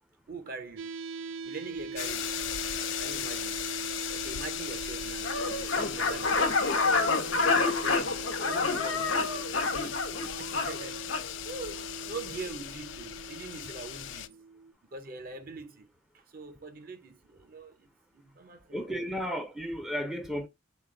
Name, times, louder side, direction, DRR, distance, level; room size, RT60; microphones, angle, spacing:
voice 1, 0.3-0.9 1.4-2.3 3.0-3.6 4.1-6.6 7.3-14.5 14.9-15.9 16.1-19.1, right 3 dB, 50° right, 0.6 m, -44 dB
sound 1, 0.8-14.7, right 4 dB, 85° right, 0.3 m, -42 dB
sound 2, 2.0-14.3, left 12 dB, 65° left, 0.3 m, -38 dB
sound 3, 5.2-11.3, left 3 dB, 85° left, 0.7 m, -28 dB
voice 2, 18.7-20.5, equal, ahead, 0.4 m, -33 dB
4.1 x 2.2 x 3.6 m
head